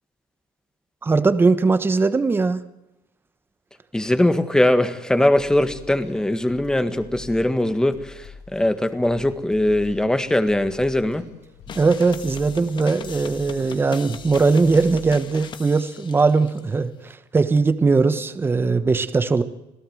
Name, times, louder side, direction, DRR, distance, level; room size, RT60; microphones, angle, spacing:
voice 1, 1.0-2.6 11.7-19.4, right 4 dB, 20° right, 12 dB, 1.2 m, -20 dB
voice 2, 3.9-11.2, left 1 dB, 5° left, 10 dB, 1.7 m, -21 dB
sound 1, 5.4-15.6, left 6 dB, 65° left, 5.6 m, -45 dB
sound 2, 11.7-16.6, left 7 dB, 40° left, 1.6 m, -40 dB
27.0 x 17.0 x 7.7 m, 0.98 s
cardioid pair, 125°, 12 cm